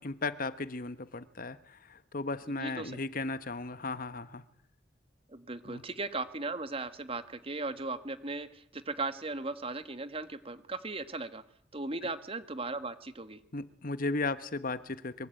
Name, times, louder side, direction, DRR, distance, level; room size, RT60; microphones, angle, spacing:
voice 1, 0.0-4.4 5.6-5.8 13.5-15.3, left 3 dB, 50° left, 13 dB, 1.2 m, -36 dB
voice 2, 2.6-3.0 5.3-11.4 11.7-13.4, right 3 dB, 30° right, 11 dB, 1.6 m, -37 dB
24.0 x 24.0 x 9.1 m, 0.71 s
head